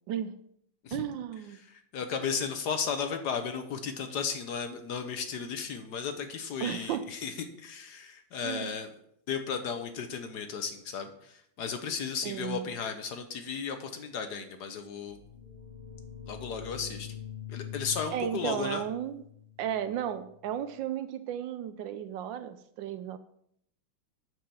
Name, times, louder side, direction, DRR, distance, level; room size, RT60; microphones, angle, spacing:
voice 1, 0.1-0.4 0.9-1.6 6.6-7.1 8.4-8.8 12.2-12.6 18.1-19.2 19.6-23.2, right 10 dB, 75° right, 12 dB, 1.2 m, -34 dB
voice 2, 1.5-8.9 9.3-15.2 16.3-17.1 17.5-18.8, left 6 dB, 65° left, 7 dB, 1.2 m, -35 dB
sound 1, 15.0-20.6, left 9 dB, 25° left, 2.0 m, -45 dB
8.7 x 4.6 x 6.8 m, 0.72 s
omnidirectional pair, 2.2 m